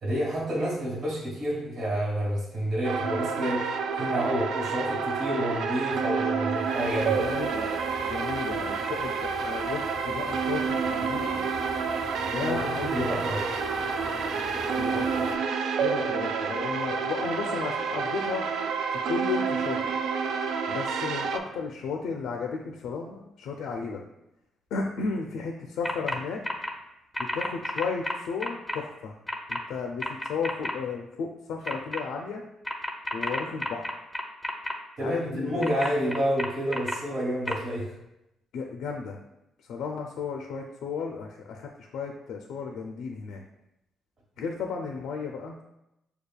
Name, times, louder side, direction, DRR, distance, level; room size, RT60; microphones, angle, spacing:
voice 1, 0.0-7.2 12.4-13.6 35.0-38.0, equal, 55° right, -5 dB, 1.4 m, -29 dB
sound 1, 2.8-21.4, right 5 dB, 75° right, 0.3 m, -29 dB
sound 2, 6.5-15.4, equal, 10° right, 1.1 m, -40 dB
voice 2, 7.2-7.7 8.0-11.4 12.3-13.1 14.8-15.3 15.8-18.5 19.1-19.9 20.7-24.0 24.7-26.4 27.2-29.2 29.5-32.4 33.1-34.0 35.0-35.7 38.5-39.2 39.6-43.4 44.4-45.6, left 5 dB, 80° left, 2 dB, 0.4 m, -34 dB
sound 3, 25.8-26.2 26.4-26.7 27.1-28.8 29.3-29.6 30.0-30.7 31.6-32.0 32.6-34.7 35.6-36.9 37.5-37.6, left 1 dB, 5° left, 0.6 m, -31 dB
6.6 x 2.3 x 2.3 m, 0.88 s
cardioid pair, 90°, 0 cm